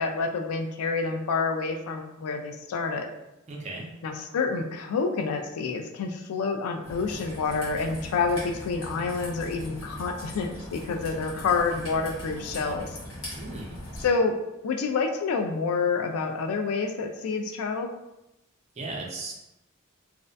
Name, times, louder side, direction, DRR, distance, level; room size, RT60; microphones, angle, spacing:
voice 1, 0.0-3.1 4.0-13.0 14.0-14.4 14.6-17.9, left 4 dB, 90° left, 4 dB, 0.3 m, -28 dB
voice 2, 3.5-3.9 13.4-13.8 18.8-19.3, right 2 dB, 30° right, -1 dB, 0.4 m, -36 dB
Raindrop / Trickle dribble, 6.8-14.0, equal, 65° left, 1.0 m, -40 dB
2.4 x 2.1 x 2.5 m, 0.91 s
head